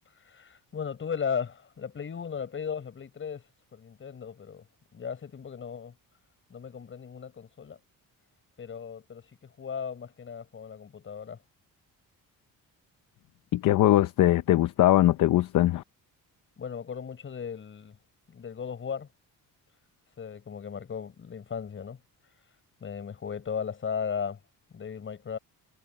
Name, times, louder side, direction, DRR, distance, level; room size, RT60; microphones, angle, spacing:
voice 1, 0.2-3.4 3.7-4.6 4.9-5.9 6.5-7.8 8.6-11.4 16.6-18.0 18.3-19.1 20.2-22.0 22.8-24.4 24.7-25.4, left 7 dB, 35° left, 6.8 m, -36 dB
voice 2, 13.5-15.8, left 14 dB, 60° left, 0.7 m, -21 dB
cardioid pair, 160°, 35 cm